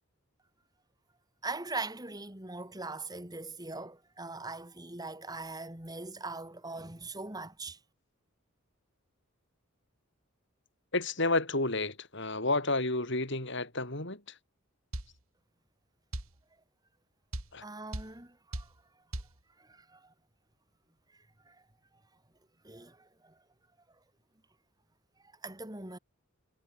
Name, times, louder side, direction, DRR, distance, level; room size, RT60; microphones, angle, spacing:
voice 1, 1.4-7.8 17.6-18.7 19.6-20.1 21.5-21.6 22.6-23.3 25.4-26.0, right 3 dB, 20° right, 3.4 m, -41 dB
voice 2, 10.9-14.4 17.5-17.6, left 2 dB, 55° left, 6.8 m, -31 dB
sound 1, 14.9-15.1 16.1-16.3 17.3-17.5 17.9-18.1 18.5-18.7 19.1-19.3, right 1 dB, 80° right, 3.6 m, -37 dB
head